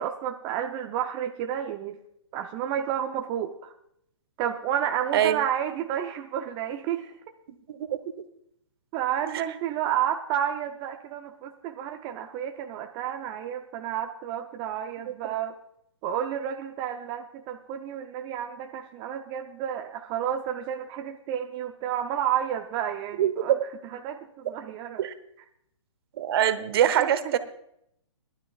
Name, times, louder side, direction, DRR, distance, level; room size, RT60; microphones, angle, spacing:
voice 1, 0.0-2.0 2.3-3.7 4.4-7.1 8.9-15.5 16.0-23.6 23.9-25.0 27.0-27.1, right 10 dB, 30° right, 4 dB, 0.7 m, -31 dB
voice 2, 7.7-8.0 9.3-9.4 23.2-23.6 24.4-24.5 25.0-25.1 26.2-27.4, right 10 dB, 50° right, 11 dB, 1.0 m, -24 dB
21.5 x 12.0 x 2.4 m, 0.73 s
hypercardioid pair, 135°, 16 cm